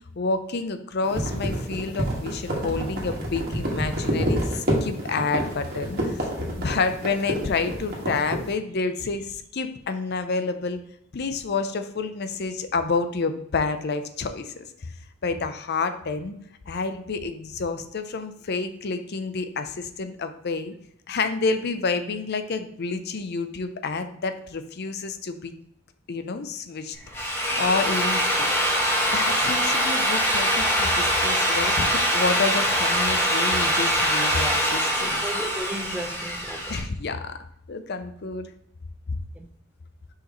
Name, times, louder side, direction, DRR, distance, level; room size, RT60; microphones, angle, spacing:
voice 1, 0.2-6.2 6.6-10.8 11.1-14.6 15.2-16.4 16.7-20.7 21.1-25.5 26.1-27.0 27.6-28.5 29.1-35.2 36.7-37.4 37.7-38.5, left 4 dB, 55° left, 9 dB, 0.6 m, -29 dB
sound 1, 1.0-8.5, right 1 dB, 50° right, 1.7 m, -28 dB
Drill, 27.0-36.8, equal, 10° left, 1.7 m, -23 dB
voice 2, 35.0-36.8 39.4-39.5, right 1 dB, 5° right, 5 dB, 0.5 m, -35 dB
6.5 x 5.0 x 3.0 m, 0.74 s
head